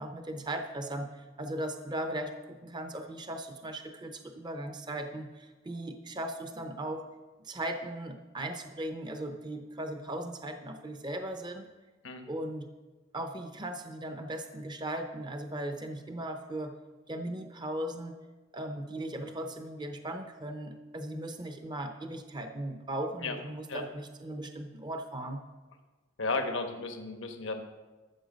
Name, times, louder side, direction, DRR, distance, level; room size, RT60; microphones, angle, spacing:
voice 1, 0.0-7.0 7.4-11.7 12.3-12.7 13.1-16.7 17.1-18.2 18.5-25.4, right 1 dB, 25° right, 6 dB, 0.7 m, -38 dB
voice 2, 26.2-27.6, left 3 dB, 85° left, 5 dB, 1.1 m, -34 dB
13.0 x 7.2 x 5.1 m, 1.2 s
head